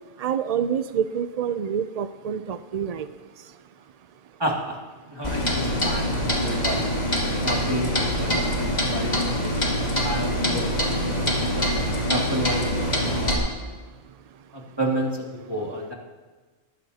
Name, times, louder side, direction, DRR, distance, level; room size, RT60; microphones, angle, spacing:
voice 1, 0.2-3.1, right 8 dB, 75° right, 11 dB, 0.3 m, -27 dB
voice 2, 4.4-4.8 5.1-6.1 6.3-6.9 7.4-11.7 12.1-13.5 14.5-15.9, right 1 dB, 20° right, -2 dB, 2.2 m, -31 dB
Clock, 5.2-13.4, equal, 35° left, 2.7 m, -24 dB
19.5 x 14.5 x 2.8 m, 1.3 s
omnidirectional pair, 1.3 m